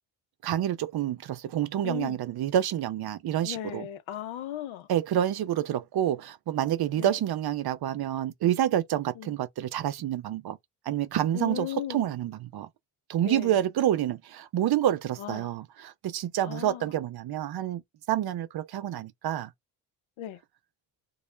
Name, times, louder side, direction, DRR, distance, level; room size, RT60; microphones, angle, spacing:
voice 1, 0.4-3.9 4.9-10.6 10.9-12.7 13.1-17.8 18.1-19.5, right 11 dB, 50° right, 0.5 m, -28 dB
voice 2, 1.8-2.2 3.4-4.9 7.0-7.1 9.2-9.3 11.3-12.0 13.2-13.5 15.2-15.5 16.4-16.9 20.2-20.4, left 11 dB, 70° left, 0.7 m, -36 dB
2.3 x 2.0 x 3.1 m
supercardioid pair, 60°, 49 cm